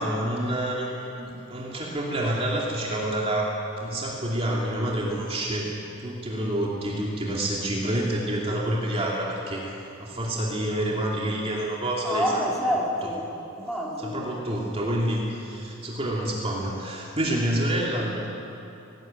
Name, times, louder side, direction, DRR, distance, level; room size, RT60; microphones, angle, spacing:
voice 1, 0.0-5.7 6.0-9.7 10.0-12.4 14.0-18.3, right 1 dB, 30° right, -3 dB, 2.8 m, -28 dB
voice 2, 12.0-14.2, equal, ahead, -4 dB, 3.6 m, -28 dB
19.0 x 18.0 x 9.0 m, 2.8 s
head